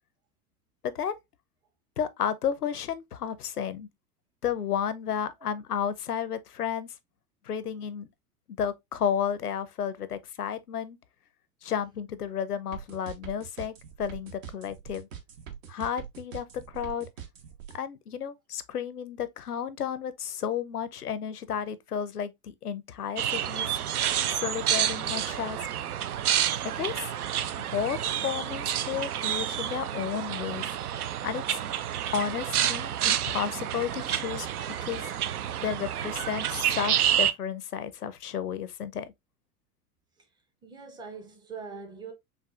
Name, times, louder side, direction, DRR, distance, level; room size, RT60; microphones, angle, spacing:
voice 1, 0.8-1.2 2.0-3.9 4.4-6.9 7.4-8.1 8.6-11.0 11.6-15.1 15.7-17.1 17.7-23.7 24.4-25.6 26.6-27.1 27.6-28.0 28.2-30.6 31.2-31.6 32.1-34.5 34.8-35.1 35.6-39.1, left 8 dB, 85° left, 0.6 m, -32 dB
sound 1, 12.7-17.8, right 9 dB, 60° right, 1.0 m, -42 dB
sound 2, 23.2-37.3, right 10 dB, 75° right, 0.5 m, -29 dB
voice 2, 40.2-42.1, right 5 dB, 10° right, 0.5 m, -44 dB
5.8 x 2.3 x 2.4 m
figure-of-eight pair, 90°, 45 cm